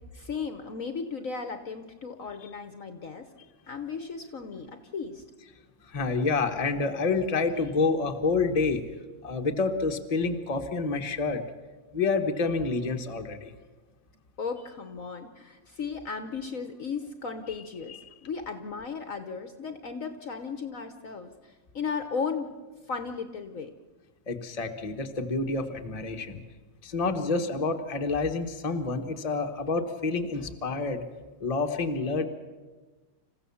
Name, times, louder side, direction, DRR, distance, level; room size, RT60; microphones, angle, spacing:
voice 1, 0.1-3.3 3.7-5.2 14.4-18.0 18.2-22.5 22.9-23.7, left 5 dB, 50° left, 8 dB, 1.3 m, -35 dB
voice 2, 5.8-8.8 9.2-11.4 11.9-13.5 17.9-18.0 24.3-26.4 26.8-31.0 31.4-32.3, left 3 dB, 25° left, 5 dB, 1.1 m, -28 dB
27.5 x 15.0 x 7.1 m, 1.3 s
omnidirectional pair, 2.0 m